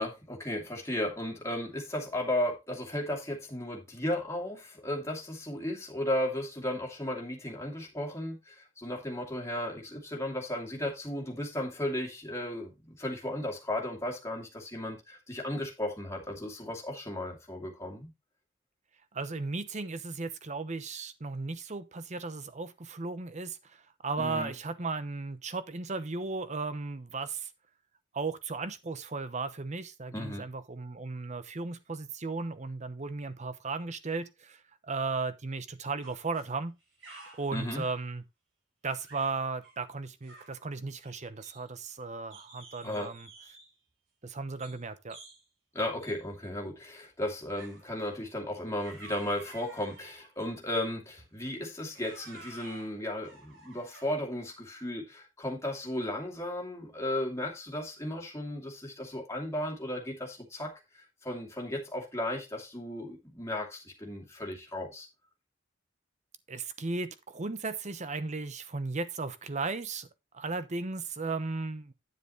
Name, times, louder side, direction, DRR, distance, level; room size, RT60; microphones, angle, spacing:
voice 1, 0.0-18.1 24.2-24.5 30.1-30.5 37.5-37.8 42.8-43.1 45.7-65.1, left 1 dB, 15° left, 2.6 m, -35 dB
voice 2, 19.1-27.5 28.1-36.8 37.4-38.2 38.8-43.3 44.2-45.2 66.5-70.1 70.3-71.9, right 3 dB, 35° right, 0.9 m, -36 dB
sound 1, 36.0-36.5 36.8-38.1 38.9-39.3 39.6-39.8 40.2-40.6 41.0-41.9 42.3-43.7 44.6-44.8 45.1-45.4 46.0-46.2 47.6-47.9 48.8-50.4 51.2-51.4 51.9-54.2, right 3 dB, 75° right, 4.4 m, -52 dB
9.6 x 7.6 x 3.1 m
head